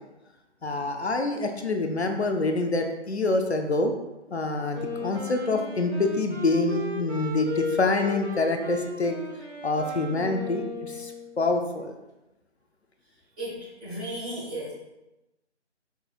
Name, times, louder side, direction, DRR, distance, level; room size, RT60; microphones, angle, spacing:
voice 1, 0.6-3.9 4.3-9.2 9.6-11.9, left 2 dB, 65° left, 5 dB, 0.6 m, -26 dB
Wind instrument woodwind instrument, 4.7-11.4, left 3 dB, 70° right, 1.3 m, -36 dB
voice 2, 13.4-14.7, right 1 dB, 10° right, -12 dB, 1.1 m, -35 dB
5.3 x 3.7 x 2.4 m, 0.97 s
figure-of-eight pair, 150°, 35 cm